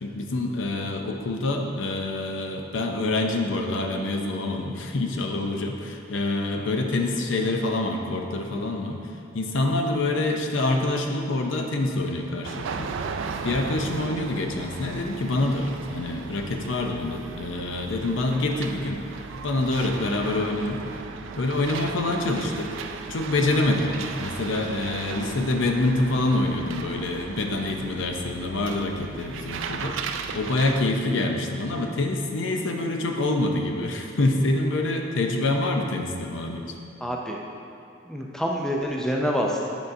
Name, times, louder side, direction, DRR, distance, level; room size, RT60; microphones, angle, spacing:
voice 1, 0.0-9.0 9.3-12.9 13.4-19.0 19.4-20.9 21.4-22.7 23.1-30.0 30.3-36.8, left 2 dB, 70° left, 3 dB, 0.6 m, -26 dB
sound 1, 12.4-30.8, right 5 dB, 70° right, 0.4 m, -36 dB
voice 2, 37.0-37.4 38.1-39.8, equal, 5° left, -1 dB, 0.4 m, -27 dB
8.7 x 5.4 x 2.7 m, 2.6 s
head